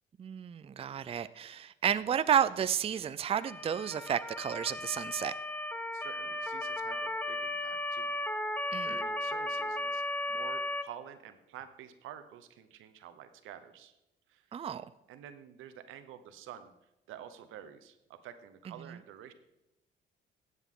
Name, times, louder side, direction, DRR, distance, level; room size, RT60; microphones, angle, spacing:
voice 1, 0.2-5.3 8.7-8.9 14.5-14.8, right 9 dB, 30° right, 14 dB, 0.4 m, -31 dB
Motor vehicle (road) / Siren, 3.4-10.8, left 1 dB, 10° left, 0.7 m, -35 dB
voice 2, 5.9-8.1 8.3-10.0 10.3-14.0 14.3-14.5 15.1-16.7 17.1-19.3, right 10 dB, 90° right, 10 dB, 1.0 m, -49 dB
14.5 x 8.1 x 3.8 m, 0.92 s
cardioid pair, 90°, 20 cm